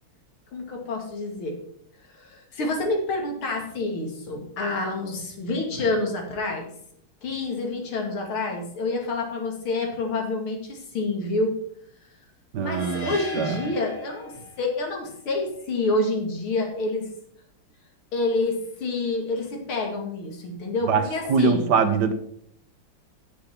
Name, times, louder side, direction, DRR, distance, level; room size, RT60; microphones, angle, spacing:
voice 1, 0.5-1.6 2.1-6.7 7.2-11.5 12.6-17.1 18.1-21.7, left 2 dB, 85° left, 2 dB, 3.1 m, -28 dB
voice 2, 12.5-13.5 20.9-21.0 21.3-22.1, right 5 dB, 65° right, 9 dB, 1.3 m, -22 dB
sound 1, 12.7-14.8, left 3 dB, 70° left, 2.7 m, -38 dB
10.0 x 7.0 x 5.8 m, 0.68 s
omnidirectional pair, 2.3 m